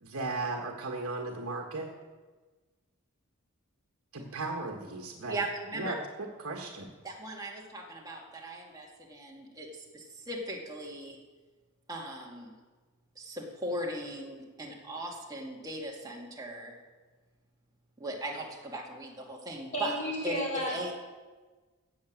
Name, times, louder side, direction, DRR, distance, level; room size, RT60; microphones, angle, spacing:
voice 1, 0.0-1.9 4.1-5.4 5.7-6.0 6.4-6.9, right 2 dB, 60° right, 1 dB, 1.7 m, -36 dB
voice 2, 5.3-6.0 7.0-11.2 11.9-12.5 13.2-16.8 18.0-20.0 20.2-20.4 20.7-20.9, right 1 dB, 15° right, -2 dB, 2.3 m, -38 dB
voice 3, 19.7-20.8, equal, 35° left, -4 dB, 4.7 m, -32 dB
17.0 x 7.3 x 7.5 m, 1.3 s
head